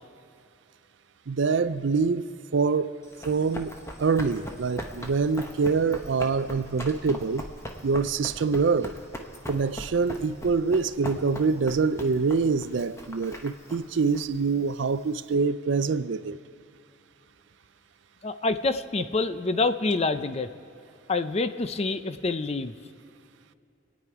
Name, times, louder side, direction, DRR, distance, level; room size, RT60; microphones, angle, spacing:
voice 1, 1.3-2.3 2.5-2.9 3.2-7.5 7.8-8.9 9.5-16.4, right 4 dB, 70° right, 0.5 m, -25 dB
Run, 3.0-15.3, equal, 15° left, 1.0 m, -41 dB
voice 2, 18.2-20.5 21.1-22.7, left 3 dB, 35° left, 0.5 m, -27 dB
26.5 x 9.4 x 4.8 m
head